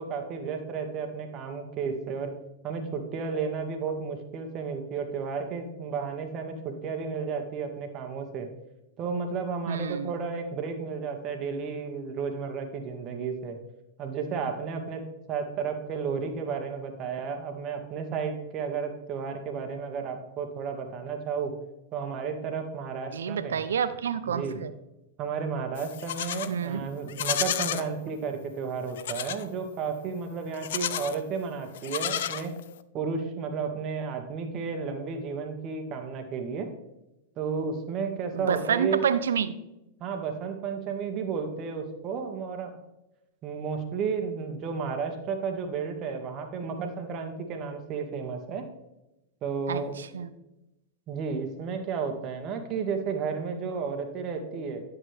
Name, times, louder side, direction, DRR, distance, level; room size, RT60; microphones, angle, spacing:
voice 1, 0.0-2.3 2.6-8.5 9.0-13.6 14.0-15.0 15.3-21.6 21.9-23.6 24.3-24.6 25.2-32.5 32.9-36.7 37.4-39.0 40.0-42.8 43.4-48.7 49.4-50.0 51.1-54.8, right 5 dB, 40° right, 4 dB, 1.8 m, -32 dB
voice 2, 9.7-10.1 23.1-24.7 26.5-26.8 38.3-39.5 49.7-50.3, right 7 dB, 85° right, 12 dB, 0.6 m, -28 dB
Livestock farm animals working animals, 25.8-26.5 27.1-27.9 29.0-29.5 30.5-31.2 31.7-32.8, left 11 dB, 70° left, 0.5 m, -31 dB
11.0 x 7.6 x 3.4 m, 0.93 s
hypercardioid pair, 115°, 0 cm